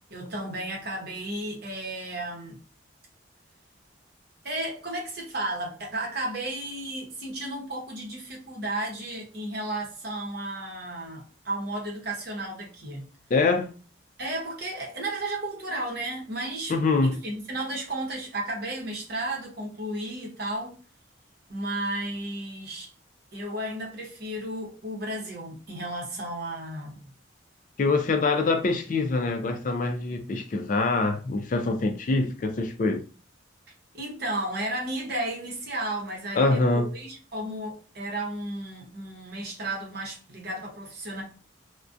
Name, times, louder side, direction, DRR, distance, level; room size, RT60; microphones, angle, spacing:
voice 1, 0.1-2.6 4.4-13.1 14.2-16.7 17.0-20.7 21.5-22.9 23.3-27.1 33.9-41.2, right 1 dB, 55° right, 0.8 m, -33 dB
voice 2, 13.3-13.7 16.7-17.2 27.8-33.0 36.4-36.9, left 3 dB, 40° left, 0.3 m, -24 dB
2.3 x 2.1 x 2.5 m
head